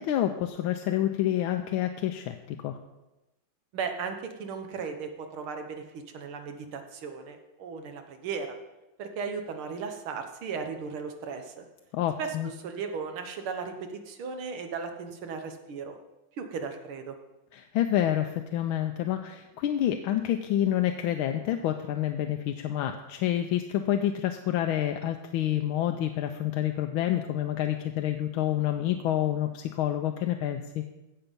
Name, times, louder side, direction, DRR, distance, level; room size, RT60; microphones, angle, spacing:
voice 1, 0.0-2.4 2.6-2.8 11.9-12.5 17.5-30.8, left 11 dB, 80° left, 6 dB, 1.4 m, -28 dB
voice 2, 3.7-8.6 9.0-11.7 12.2-16.0 16.4-17.1, right 5 dB, 85° right, 6 dB, 2.0 m, -36 dB
16.0 x 5.7 x 5.3 m, 1.0 s
omnidirectional pair, 2.3 m